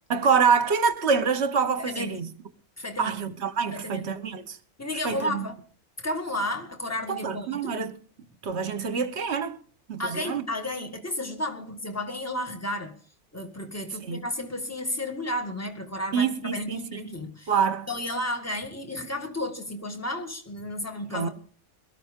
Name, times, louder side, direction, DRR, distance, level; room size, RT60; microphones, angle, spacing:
voice 1, 0.1-2.3 3.0-4.6 5.0-5.4 7.1-7.9 8.4-9.6 9.9-10.4 14.0-14.2 16.1-17.0 17.5-17.9 21.1-21.3, right 6 dB, 50° right, 1.2 m, -26 dB
voice 2, 1.8-2.1 2.8-3.2 3.7-4.1 4.8-5.5 6.0-7.8 10.0-12.9 13.3-17.5 17.9-21.3, left 1 dB, 10° left, 1.8 m, -32 dB
22.0 x 14.0 x 3.7 m
omnidirectional pair, 1.6 m